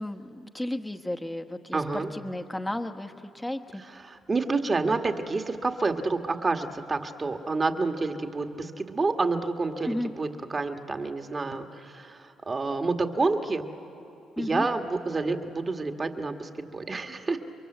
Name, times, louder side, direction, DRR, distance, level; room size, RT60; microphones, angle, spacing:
voice 1, 0.0-3.8 9.8-10.1 14.4-14.7, left 1 dB, 10° left, 7 dB, 1.2 m, -33 dB
voice 2, 1.7-2.1 3.8-13.6 14.4-17.4, right 3 dB, 30° right, 5 dB, 1.7 m, -29 dB
29.0 x 23.0 x 8.1 m, 3.0 s
cardioid pair, 90°, 0 cm